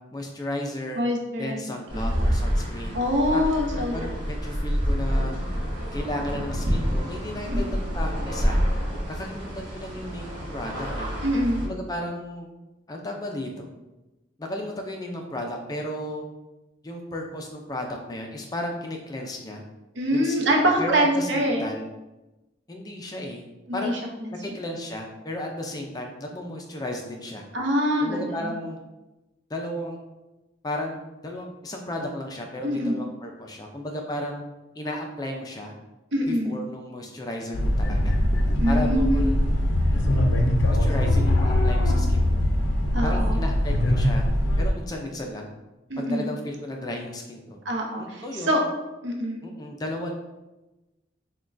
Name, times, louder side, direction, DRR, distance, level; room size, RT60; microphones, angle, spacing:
voice 1, 0.1-1.0 1.4-3.0 3.3-3.4 3.7-5.4 5.9-8.6 9.1-11.1 11.6-12.5 12.9-13.7 14.4-16.2 16.8-19.6 20.1-21.9 22.7-23.4 23.7-24.0 24.3-27.4 28.0-28.8 29.5-30.0 30.6-31.0 31.2-34.4 34.8-35.7 36.3-38.2 38.7-39.4 39.9-40.3 40.7-42.4 43.0-44.2 44.6-45.5 46.0-47.6 48.0-48.6 49.4-50.1, left 1 dB, 20° left, 2 dB, 0.3 m, -34 dB
voice 2, 1.0-1.6 1.9-2.1 2.9-3.9 7.5-7.6 11.2-11.6 20.0-21.6 23.7-24.0 27.5-28.4 32.6-33.0 36.1-36.5 38.6-39.3 42.9-43.4 45.9-46.3 47.7-48.6 49.0-49.4, equal, 65° right, 1 dB, 0.7 m, -24 dB
sound 1, 1.9-11.7, equal, 25° right, 1.3 m, -27 dB
sound 2, 37.5-44.7, left 1 dB, 80° left, 0.5 m, -22 dB
5.9 x 2.2 x 2.5 m, 1.0 s
head